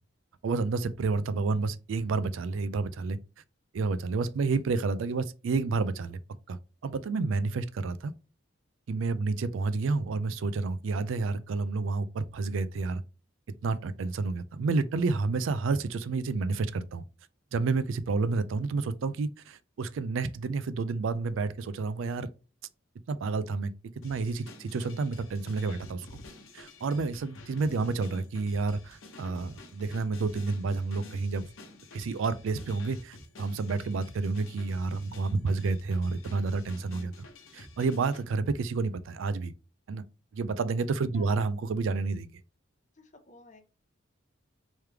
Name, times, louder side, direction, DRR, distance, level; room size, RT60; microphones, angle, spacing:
voice 1, 0.4-3.2 3.7-6.2 6.5-8.1 8.9-13.0 13.6-17.0 17.5-22.3 23.1-23.7 24.0-26.2 26.5-31.5 31.9-37.1 37.5-39.5 39.9-40.0 40.3-42.3, right 4 dB, 75° right, 0.4 m, -30 dB
sound 1, 24.0-38.2, left 2 dB, 85° left, 0.9 m, -50 dB
voice 2, 42.9-43.7, left 1 dB, 35° left, 0.7 m, -51 dB
3.3 x 3.1 x 3.4 m
head